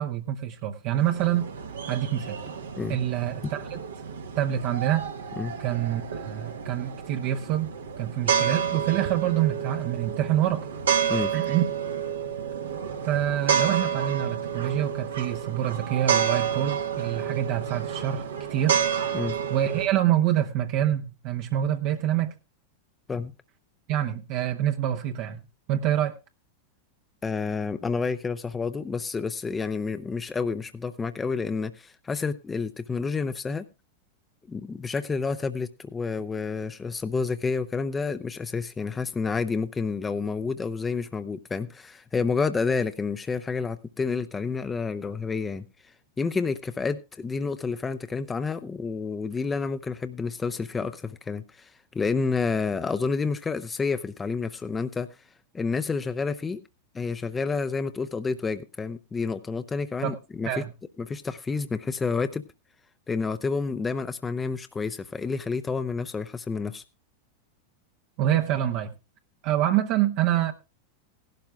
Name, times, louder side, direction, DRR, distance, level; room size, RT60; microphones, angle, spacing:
voice 1, 0.0-1.5 1.9-2.4 2.9-3.8 4.4-5.1 5.6-7.7 8.0-10.7 11.3-11.6 13.0-18.8 19.5-22.3 23.9-25.4 25.7-26.2 60.0-60.2 60.5-60.7 68.2-68.9 69.4-70.5, right 12 dB, 50° right, 0.8 m, -26 dB
sound 1, 0.9-19.9, right 8 dB, 80° right, 1.2 m, -30 dB
voice 2, 27.2-33.6 34.5-55.1 55.5-56.6 56.9-60.5 61.0-62.4 63.1-66.8, left 4 dB, 20° left, 0.6 m, -29 dB
17.0 x 12.0 x 2.4 m
hypercardioid pair, 95°, 0 cm